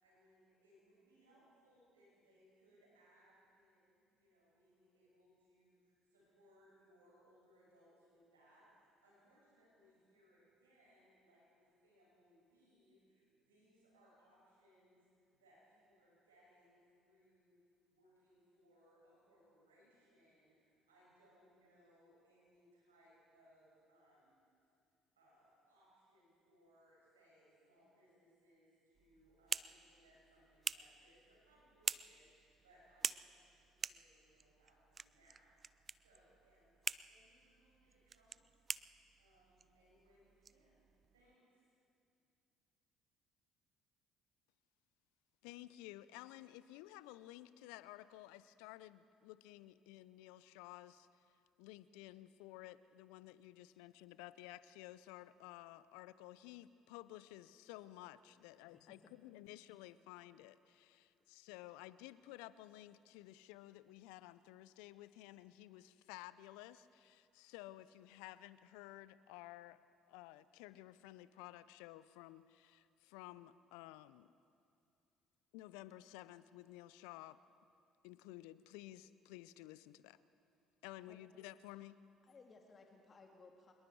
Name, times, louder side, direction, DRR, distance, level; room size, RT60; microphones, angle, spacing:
voice 1, 0.0-15.0 15.3-17.6 17.9-24.3 25.1-35.6 36.0-36.7 37.1-40.8 41.1-41.6, equal, 85° right, -6 dB, 6.1 m, -70 dB
sound 1, 29.0-41.3, right 5 dB, 35° right, 0.4 m, -47 dB
voice 2, 45.4-51.2 51.6-69.8 70.1-74.3 75.5-77.4 78.0-80.2 80.8-82.0, left 15 dB, 70° left, 16 dB, 0.5 m, -54 dB
voice 3, 58.5-59.1 61.0-61.1 81.1-81.2 82.2-83.7, left 4 dB, 40° left, 2 dB, 2.0 m, -62 dB
25.5 x 22.0 x 4.7 m, 2.5 s
hypercardioid pair, 55°, 0 cm